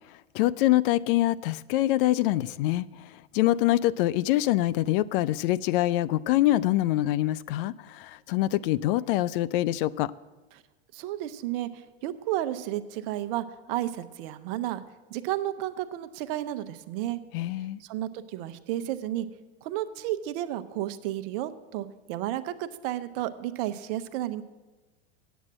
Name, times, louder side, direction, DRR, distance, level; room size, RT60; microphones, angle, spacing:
voice 1, 0.3-2.8 3.3-10.1 17.3-17.8, left 15 dB, 55° left, 0.4 m, -25 dB
voice 2, 10.9-14.8 15.1-17.2 17.8-19.3 19.6-24.4, right 13 dB, 55° right, 0.8 m, -32 dB
8.7 x 8.2 x 7.3 m
hypercardioid pair, 105°, 33 cm